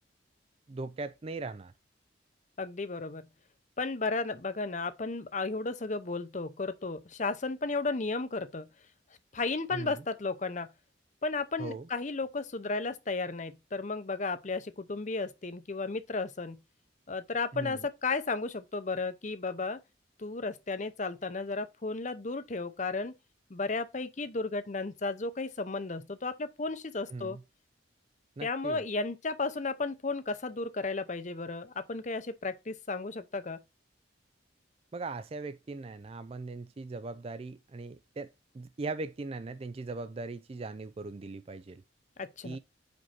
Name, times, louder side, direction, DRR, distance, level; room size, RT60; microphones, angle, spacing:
voice 1, 0.7-1.7 9.7-10.0 11.6-11.9 17.5-17.8 27.1-27.4 28.4-28.8 34.9-41.8 42.4-42.6, right 3 dB, 30° right, 0.4 m, -39 dB
voice 2, 2.6-3.3 3.8-8.7 9.3-10.7 11.2-16.6 17.1-19.8 20.2-23.1 23.5-27.4 28.4-33.6 42.2-42.6, left 3 dB, 40° left, 0.7 m, -34 dB
5.2 x 4.6 x 5.8 m
head